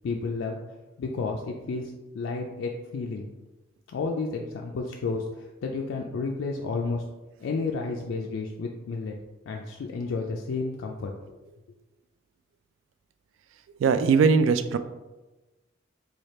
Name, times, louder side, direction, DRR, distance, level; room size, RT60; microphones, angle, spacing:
voice 1, 0.0-0.6 1.0-3.3 3.9-7.0 7.4-9.1 9.5-11.4, left 4 dB, 80° left, 1 dB, 0.3 m, -31 dB
voice 2, 13.8-14.8, right 5 dB, 85° right, 10 dB, 0.3 m, -20 dB
3.2 x 2.4 x 4.2 m, 1.1 s
head